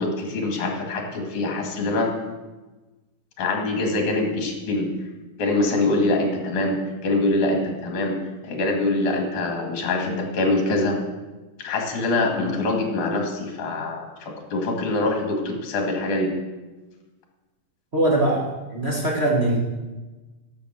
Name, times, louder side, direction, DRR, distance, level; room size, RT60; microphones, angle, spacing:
voice 1, 0.0-2.1 3.4-4.9 5.4-8.2 8.4-11.0 11.6-16.3, left 2 dB, 70° left, 2 dB, 3.3 m, -24 dB
voice 2, 17.9-18.4 18.7-19.6, right 1 dB, 30° right, -4 dB, 1.3 m, -21 dB
12.0 x 7.4 x 6.4 m, 1.2 s
omnidirectional pair, 3.7 m